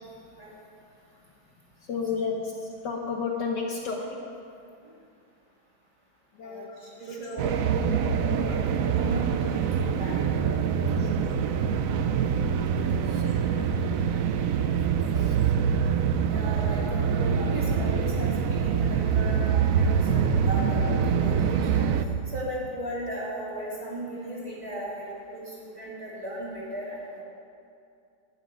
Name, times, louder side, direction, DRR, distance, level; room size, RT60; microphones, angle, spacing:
voice 1, 1.8-4.3 6.3-7.4 7.8-8.2 10.7-11.1 13.0-15.6, left 4 dB, 65° left, 0 dB, 1.6 m, -35 dB
voice 2, 6.4-7.6 8.3-8.6 8.9-10.4 10.7-10.9 16.2-21.9 22.3-27.2, right 1 dB, 15° right, -7 dB, 3.3 m, -36 dB
sound 1, 7.4-22.0, right 7 dB, 90° right, 0.7 m, -25 dB
12.0 x 7.4 x 9.2 m, 2.5 s
omnidirectional pair, 2.2 m